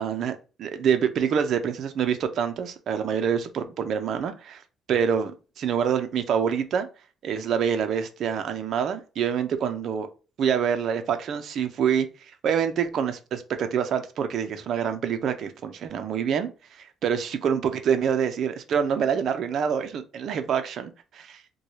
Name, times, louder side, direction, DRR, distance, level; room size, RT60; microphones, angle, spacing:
voice 1, 0.0-4.6 4.9-6.9 7.2-10.1 10.4-21.5, right 7 dB, 55° right, 0.6 m, -26 dB
4.6 x 2.3 x 2.8 m
cardioid pair, 155°, 0 cm